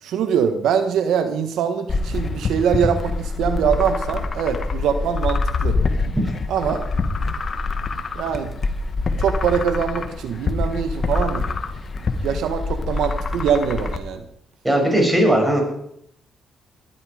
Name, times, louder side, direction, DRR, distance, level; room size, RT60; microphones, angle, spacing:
voice 1, 0.0-5.8 6.5-6.8 8.1-8.6 9.2-11.5 12.2-14.2, right 7 dB, 80° right, 8 dB, 1.4 m, -23 dB
sound 1, 1.9-14.0, left 3 dB, 40° left, 1.7 m, -25 dB
voice 2, 14.6-15.6, right 1 dB, 10° right, 1 dB, 7.7 m, -17 dB
20.5 x 12.5 x 5.1 m, 0.72 s
cardioid pair, 90°, 0 cm